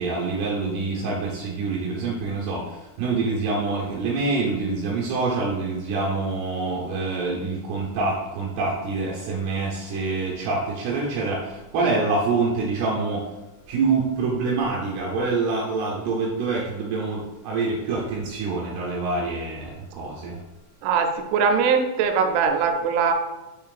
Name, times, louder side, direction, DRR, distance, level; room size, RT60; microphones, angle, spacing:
voice 1, 0.0-13.3 13.7-20.4, right 3 dB, 75° right, -3 dB, 2.7 m, -26 dB
voice 2, 20.8-23.1, right 6 dB, 90° right, 5 dB, 3.1 m, -21 dB
7.0 x 5.6 x 2.4 m, 1.1 s
omnidirectional pair, 5.3 m